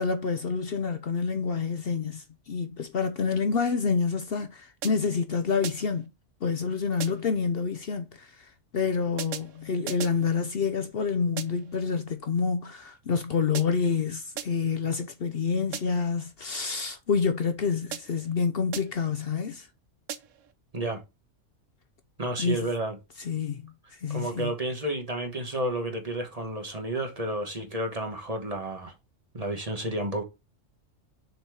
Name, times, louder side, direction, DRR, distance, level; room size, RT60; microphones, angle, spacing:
voice 1, 0.0-6.1 6.4-19.7 22.4-22.7 23.2-24.5, left 5 dB, 55° left, 0.8 m, -28 dB
sound 1, 4.8-5.2 5.6-6.1 7.0-7.4 9.2-10.3 11.4-11.8 13.5-14.0 14.4-14.8 15.7-16.1 17.9-18.3 18.7-19.1 20.1-20.5, right 9 dB, 80° right, 1.1 m, -39 dB
voice 2, 22.2-23.0 24.1-28.9 29.3-30.2, right 1 dB, 30° right, 1.3 m, -31 dB
6.8 x 4.3 x 4.7 m
omnidirectional pair, 1.3 m